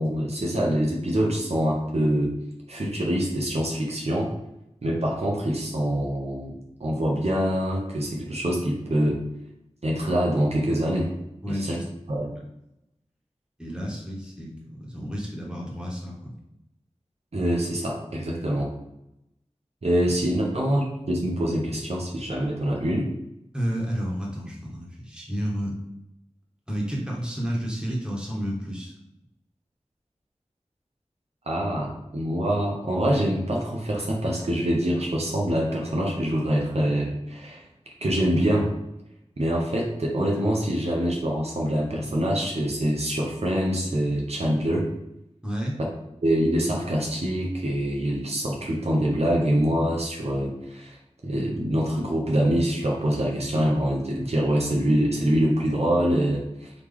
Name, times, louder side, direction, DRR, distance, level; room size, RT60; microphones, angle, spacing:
voice 1, 0.0-2.3 2.7-4.3 4.8-6.5 6.8-9.2 9.8-11.1 11.5-11.8 12.1-12.3 17.3-18.7 19.8-23.1 31.5-37.6 38.0-38.7 39.4-44.9 46.2-51.0 51.2-56.7, equal, 65° right, -2 dB, 0.8 m, -25 dB
voice 2, 11.4-11.8 12.3-12.4 13.6-16.3 23.5-25.7 26.7-28.9 45.4-45.8, equal, 5° right, -3 dB, 1.4 m, -31 dB
4.0 x 3.0 x 3.4 m, 0.87 s
wide cardioid pair, 45°, 12 cm